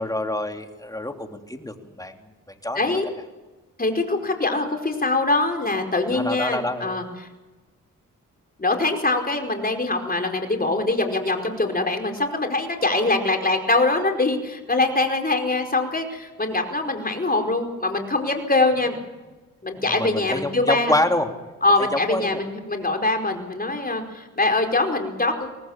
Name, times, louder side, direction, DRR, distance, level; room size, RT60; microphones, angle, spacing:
voice 1, 0.0-2.2 2.6-2.9 6.1-7.0 19.8-21.5 21.8-22.4, left 1 dB, 10° left, 4 dB, 3.3 m, -27 dB
voice 2, 2.8-3.1 3.8-7.0 8.6-19.0 19.6-20.9 21.6-25.5, left 2 dB, 30° left, 4 dB, 4.8 m, -23 dB
24.0 x 18.5 x 7.4 m, 1.2 s
cardioid pair, 55°, 32 cm